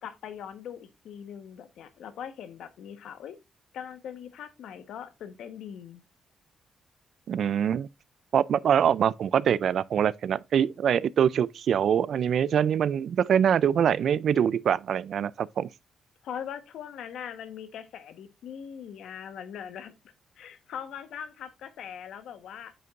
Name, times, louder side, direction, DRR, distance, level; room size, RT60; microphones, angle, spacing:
voice 1, 0.0-3.4 3.7-6.0 16.2-19.9 20.4-22.7, left 8 dB, 80° left, 1.1 m, -41 dB
voice 2, 7.3-7.9 8.3-15.7, right 8 dB, 60° right, 0.3 m, -24 dB
8.6 x 6.8 x 2.4 m
cardioid pair, 145°, 0 cm